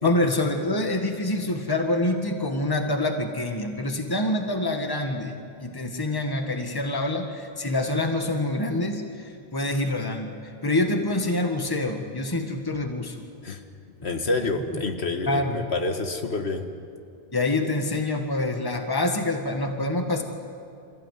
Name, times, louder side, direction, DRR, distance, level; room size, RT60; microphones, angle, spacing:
voice 1, 0.0-5.3 5.6-13.2 14.4-14.8 15.3-15.6 17.3-20.2, left 2 dB, 20° left, 4 dB, 1.7 m, -26 dB
voice 2, 14.0-16.7, left 3 dB, 90° left, 5 dB, 1.9 m, -28 dB
28.0 x 15.5 x 9.5 m, 2.4 s
omnidirectional pair, 1.1 m